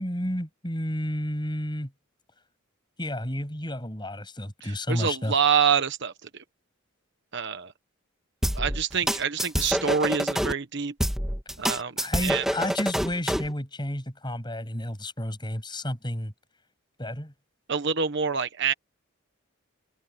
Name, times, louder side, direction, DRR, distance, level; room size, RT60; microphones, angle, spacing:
voice 1, 0.0-1.9 3.0-5.3 12.0-16.3 17.0-17.3, left 1 dB, 20° left, 7.7 m, -31 dB
voice 2, 4.6-6.3 7.3-7.7 8.5-10.9 11.6-12.4 17.7-18.7, right 6 dB, 55° right, 1.2 m, -26 dB
sound 1, 8.4-10.5 11.0-13.5, equal, ahead, 1.8 m, -27 dB
open air
head